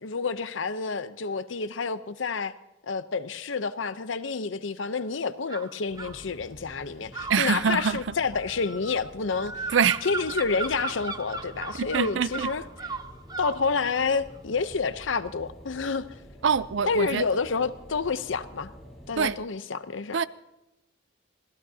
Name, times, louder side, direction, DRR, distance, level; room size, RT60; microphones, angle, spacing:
voice 1, 0.0-2.5 2.8-9.7 10.0-12.6 13.4-16.0 16.9-18.7 19.1-20.2, left 4 dB, 90° left, 0.7 m, -29 dB
sound 1, 5.5-6.2 7.1-13.6, right 4 dB, 20° right, 0.6 m, -36 dB
sound 2, 5.9-19.3, equal, ahead, 3.6 m, -48 dB
voice 2, 7.3-8.0 9.7-10.0 11.8-12.5 16.4-17.2 19.2-19.4 20.1-20.3, right 6 dB, 75° right, 0.5 m, -24 dB
25.5 x 17.0 x 2.8 m
head